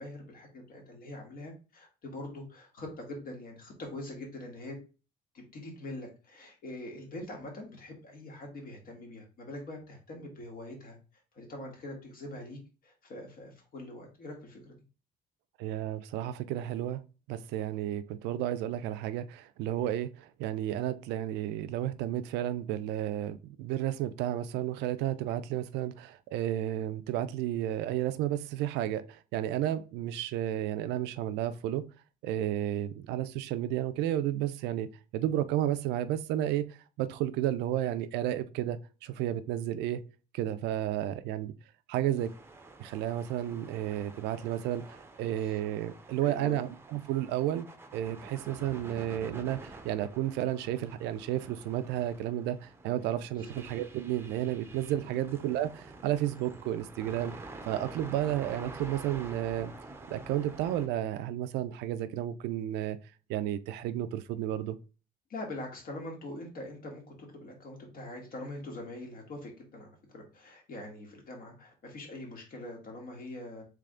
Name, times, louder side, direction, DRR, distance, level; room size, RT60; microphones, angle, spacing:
voice 1, 0.0-4.8 5.3-11.0 11.3-14.7 42.0-42.3 45.4-45.6 46.2-46.7 53.3-53.5 55.0-55.3 65.3-73.6, left 1 dB, 60° left, 1.7 m, -43 dB
voice 2, 15.6-17.0 17.3-31.8 32.2-40.0 40.3-41.5 41.9-42.3 42.8-47.7 47.9-57.3 57.7-59.7 60.1-63.0 63.3-64.8, right 12 dB, 90° right, 0.5 m, -32 dB
sound 1, 42.2-60.9, right 2 dB, 15° right, 0.7 m, -48 dB
3.3 x 3.3 x 3.7 m
cardioid pair, 110°, 17 cm